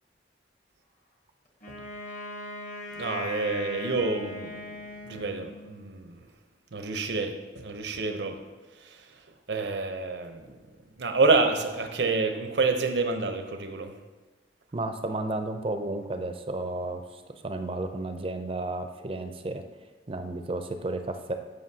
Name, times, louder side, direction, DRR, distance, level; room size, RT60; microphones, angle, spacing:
Wind instrument woodwind instrument, 1.6-5.8, left 2 dB, 45° left, 1.2 m, -39 dB
voice 1, 2.9-4.7 5.0-6.2 6.7-8.4 9.5-10.6 11.0-13.9, right 3 dB, 80° right, 6 dB, 0.7 m, -28 dB
voice 2, 14.7-19.6 20.1-21.3, right 2 dB, 30° right, 7 dB, 0.5 m, -33 dB
13.0 x 5.5 x 2.8 m, 1.3 s
head